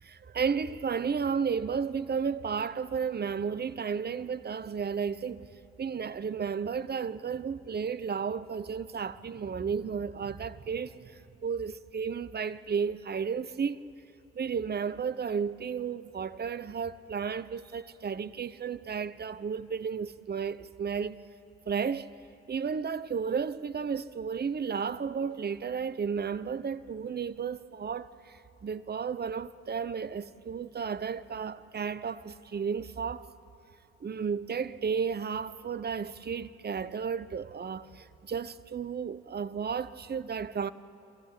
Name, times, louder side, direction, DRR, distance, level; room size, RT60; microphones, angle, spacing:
voice 1, 0.0-5.4 5.8-13.8 14.3-21.2 21.7-22.1 22.5-33.3 34.0-40.7, right 6 dB, 30° right, 0.9 m, -33 dB
26.5 x 15.0 x 8.4 m
hypercardioid pair, 50°, 33 cm